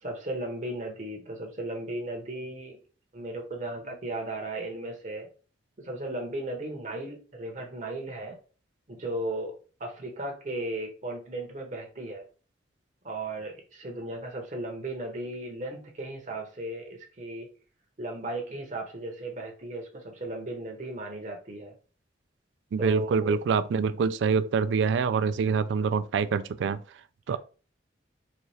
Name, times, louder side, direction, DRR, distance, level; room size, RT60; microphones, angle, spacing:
voice 1, 0.0-2.8 3.1-5.3 5.8-8.4 8.9-9.5 9.8-12.2 13.0-17.5 18.0-21.7 22.8-23.4 27.3-27.4, right 2 dB, 40° right, 0.8 m, -36 dB
voice 2, 22.7-26.8 27.3-27.4, right 5 dB, 75° right, 0.3 m, -25 dB
4.1 x 2.4 x 3.1 m
head